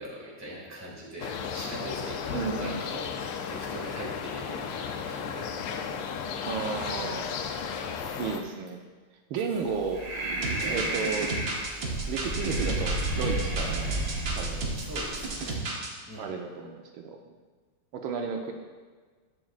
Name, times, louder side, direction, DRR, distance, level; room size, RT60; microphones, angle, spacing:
voice 1, 0.0-5.4 6.5-6.8 8.0-8.2 10.6-11.0 14.7-15.6 16.1-16.3, equal, 10° right, -4 dB, 1.5 m, -41 dB
sound 1, 1.2-8.4, left 6 dB, 85° left, 1.5 m, -34 dB
voice 2, 2.3-2.8 6.5-7.3 8.2-8.8 9.3-10.0 10.7-11.4 12.1-13.9 14.4-14.7 16.2-17.4 17.9-18.5, right 5 dB, 75° right, 3 dB, 1.5 m, -33 dB
Breathing, 9.6-15.6, right 1 dB, 25° right, 2.8 m, -32 dB
sound 2, 10.4-15.9, right 3 dB, 50° right, 1.2 m, -34 dB
10.5 x 7.5 x 2.4 m, 1.4 s
omnidirectional pair, 2.3 m